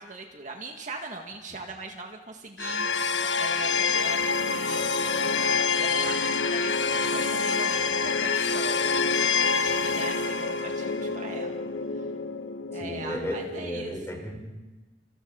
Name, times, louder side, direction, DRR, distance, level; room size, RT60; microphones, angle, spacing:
voice 1, 0.0-11.6 12.0-12.1 12.7-14.2, right 3 dB, 45° right, 2 dB, 2.1 m, -41 dB
sound 1, 2.6-13.7, left 4 dB, 75° left, 1.1 m, -27 dB
voice 2, 12.7-14.5, equal, 15° left, 1 dB, 4.6 m, -34 dB
29.0 x 28.5 x 4.2 m, 1.2 s
head